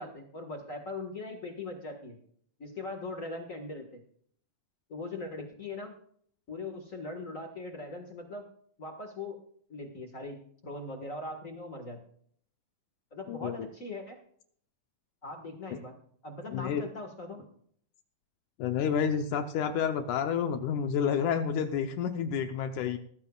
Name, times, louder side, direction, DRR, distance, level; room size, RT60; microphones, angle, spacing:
voice 1, 0.0-2.2 2.6-4.0 4.9-5.9 6.5-8.4 8.8-9.4 9.7-10.4 10.6-12.0 13.1-14.2 15.2-15.9 16.2-17.4, left 2 dB, 35° left, 4 dB, 1.3 m, -40 dB
voice 2, 13.3-13.7 16.5-16.8 18.6-23.0, left 7 dB, 75° left, 7 dB, 2.2 m, -29 dB
19.0 x 14.5 x 2.4 m, 0.62 s
omnidirectional pair, 3.8 m